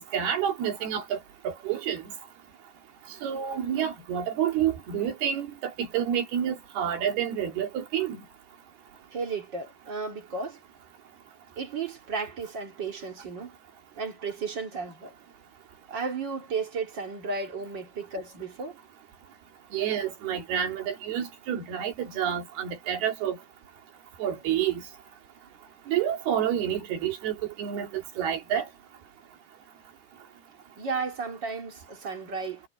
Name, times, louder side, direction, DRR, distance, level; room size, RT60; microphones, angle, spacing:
voice 1, 0.0-2.1 3.2-8.2 19.7-23.4 24.2-24.8 25.9-28.7, right 9 dB, 70° right, 4.3 m, -29 dB
voice 2, 9.1-10.6 11.6-13.6 14.0-15.1 15.9-18.8 30.8-32.6, right 4 dB, 35° right, 2.3 m, -34 dB
omnidirectional pair, 4.8 m